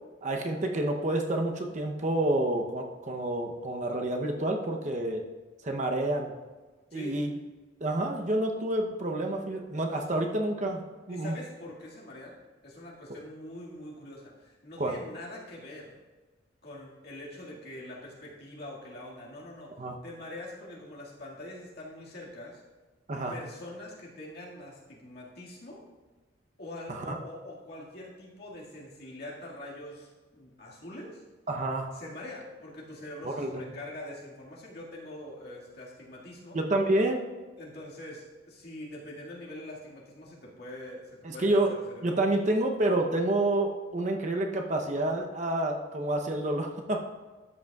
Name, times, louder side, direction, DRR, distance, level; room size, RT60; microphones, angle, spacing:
voice 1, 0.2-5.2 5.6-6.3 6.9-7.3 7.8-11.3 14.8-14.9 19.8-20.0 23.1-23.3 26.9-27.2 31.5-31.9 33.2-33.7 36.5-37.2 41.2-41.7 42.0-47.0, right 1 dB, 40° right, 2 dB, 0.8 m, -28 dB
voice 2, 11.1-12.4 12.6-16.0 16.6-19.7 20.0-22.6 23.3-25.8 26.6-31.2 31.9-36.6 37.6-42.2, left 1 dB, 55° left, -4 dB, 2.0 m, -44 dB
12.5 x 7.9 x 2.4 m, 1.3 s
head